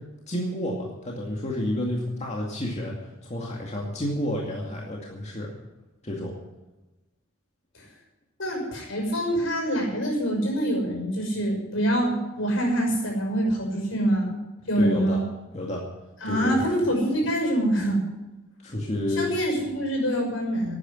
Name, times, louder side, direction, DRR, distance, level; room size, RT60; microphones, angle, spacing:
voice 1, 0.3-2.9 3.2-5.5 6.0-6.3 14.8-15.2 15.5-15.8 16.2-16.6 18.6-19.3, left 1 dB, 35° left, -1 dB, 2.3 m, -30 dB
voice 2, 8.4-14.4 14.7-15.2 16.2-18.0 19.2-20.7, right 1 dB, 75° left, 1 dB, 6.3 m, -25 dB
12.5 x 9.9 x 9.4 m, 1.1 s
head